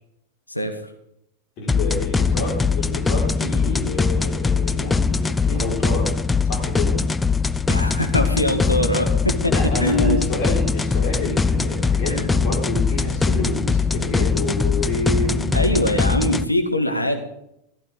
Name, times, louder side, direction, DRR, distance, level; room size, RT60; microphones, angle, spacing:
voice 1, 1.6-6.1 6.4-7.0 9.5-15.7, left 1 dB, 40° left, -2 dB, 5.3 m, -28 dB
sound 1, 1.7-16.4, left 4 dB, 10° left, 0.5 m, -21 dB
voice 2, 7.7-9.5 9.8-10.2 12.1-12.3 15.5-17.2, left 1 dB, 85° left, 5 dB, 1.7 m, -22 dB
15.0 x 14.0 x 4.0 m, 0.79 s
figure-of-eight pair, 90°, 0 cm